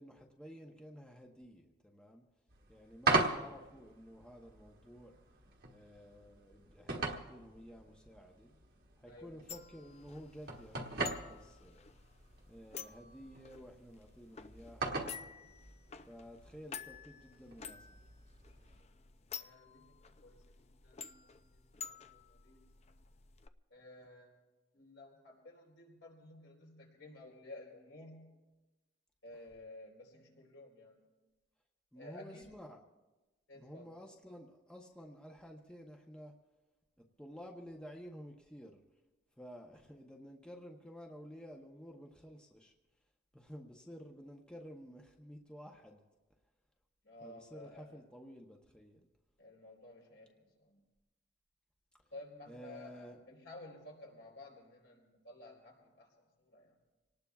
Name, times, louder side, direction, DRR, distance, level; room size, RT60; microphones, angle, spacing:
voice 1, 0.0-2.2 2.7-5.2 5.7-8.5 9.0-11.9 12.5-15.5 16.1-18.0 31.9-32.8 33.5-36.4 37.0-38.8 39.4-42.7 43.3-46.0 47.2-49.1 52.5-53.2, equal, 5° left, 0 dB, 0.8 m, -52 dB
sound 1, 2.5-18.8, right 3 dB, 55° right, 1.3 m, -41 dB
voice 2, 9.0-9.6 19.3-22.7 23.7-24.4 24.7-28.4 29.2-31.0 31.9-32.6 33.5-33.9 47.0-48.0 49.4-50.8 52.1-56.8, left 2 dB, 75° left, -1 dB, 4.0 m, -54 dB
sound 2, 9.5-23.5, left 7 dB, 35° left, 0.5 m, -51 dB
26.5 x 18.5 x 2.4 m, 1.1 s
head